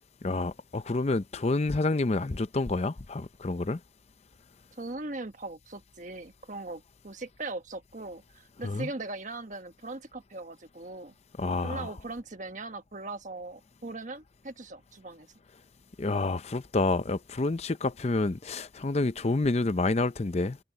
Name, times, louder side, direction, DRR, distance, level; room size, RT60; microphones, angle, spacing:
voice 1, 0.2-3.8 8.6-8.9 11.4-11.9 16.0-20.6, left 2 dB, 35° left, 0.6 m, -28 dB
voice 2, 4.7-11.1 11.6-15.3, right 2 dB, 45° right, 1.4 m, -40 dB
head